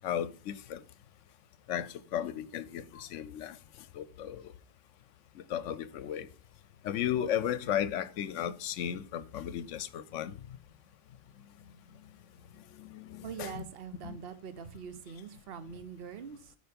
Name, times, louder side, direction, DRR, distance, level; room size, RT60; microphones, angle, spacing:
voice 1, 0.0-0.8 1.7-3.6 3.9-4.5 5.4-6.3 6.8-10.4 12.8-13.6 14.0-14.2, left 10 dB, 75° left, 0.9 m, -35 dB
voice 2, 13.2-16.6, right 7 dB, 55° right, 1.0 m, -43 dB
8.8 x 4.8 x 5.2 m
omnidirectional pair, 1.3 m